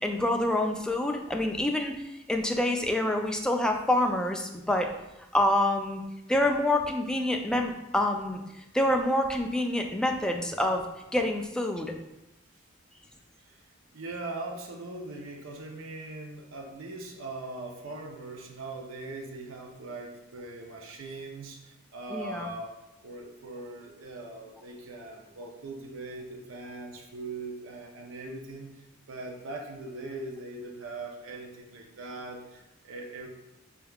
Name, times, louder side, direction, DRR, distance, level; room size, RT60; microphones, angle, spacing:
voice 1, 0.0-2.0 2.3-4.9 5.3-6.0 6.3-8.4 8.7-10.8 11.1-11.9 22.1-22.5, left 1 dB, 5° left, 2 dB, 0.3 m, -27 dB
voice 2, 13.9-28.7 29.1-33.3, right 2 dB, 80° right, 1 dB, 0.6 m, -40 dB
4.5 x 3.4 x 2.3 m, 0.92 s
head